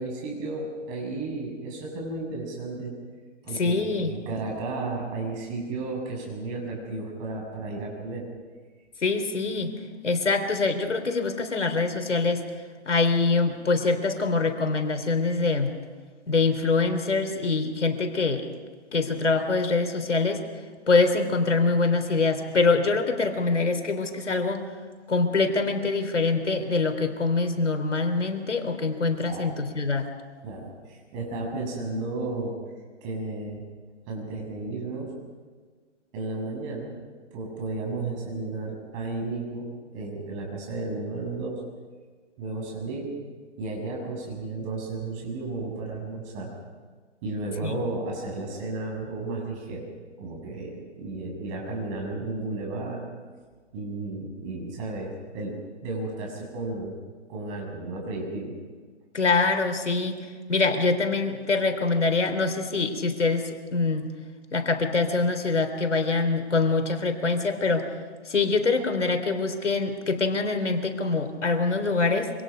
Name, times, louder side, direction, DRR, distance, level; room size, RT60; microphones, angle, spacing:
voice 1, 0.0-2.9 3.4-8.3 29.2-29.5 30.4-32.6 33.0-33.6 34.1-35.1 36.1-36.9 37.3-41.6 42.4-43.1 43.6-46.5 47.2-49.9 50.2-53.1 53.7-57.0 57.3-58.5, right 2 dB, 25° right, -1 dB, 7.3 m, -33 dB
voice 2, 3.5-4.1 9.0-9.7 10.0-12.4 12.9-15.7 16.3-18.5 18.9-20.4 20.9-24.6 25.1-30.1 47.6-47.7 59.1-64.1 64.5-67.9 68.3-72.3, left 3 dB, 85° left, 7 dB, 3.6 m, -24 dB
27.0 x 25.5 x 5.3 m, 1.5 s
hypercardioid pair, 150°, 35 cm